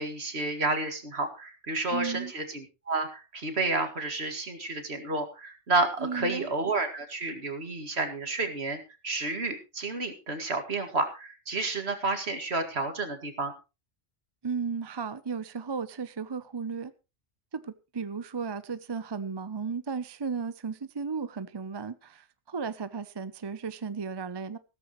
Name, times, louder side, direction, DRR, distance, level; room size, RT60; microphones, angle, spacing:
voice 1, 0.0-13.5, right 3 dB, 70° right, 2.3 m, -30 dB
voice 2, 1.9-2.3 6.0-6.5 14.4-16.9 17.5-24.6, right 5 dB, 30° right, 0.6 m, -35 dB
15.5 x 14.0 x 3.1 m
omnidirectional pair, 1.1 m